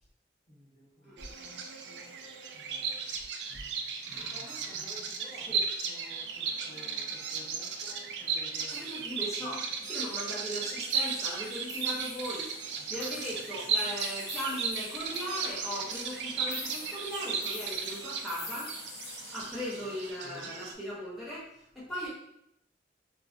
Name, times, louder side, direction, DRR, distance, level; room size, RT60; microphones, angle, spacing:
voice 1, 0.5-2.1 2.5-3.2 3.5-3.7 4.0-9.0 12.7-13.2 19.7-20.0, equal, 40° left, -5 dB, 0.9 m, -54 dB
Bird vocalization bird call bird song, 1.2-20.7, right 5 dB, 80° right, 0.3 m, -35 dB
sound 1, 8.7-9.4 9.7-10.6 10.9-20.1, left 4 dB, 70° left, 0.6 m, -47 dB
voice 2, 8.7-18.7 19.3-21.5 21.7-22.1, equal, ahead, -9 dB, 0.7 m, -38 dB
3.2 x 2.2 x 2.5 m, 0.77 s
head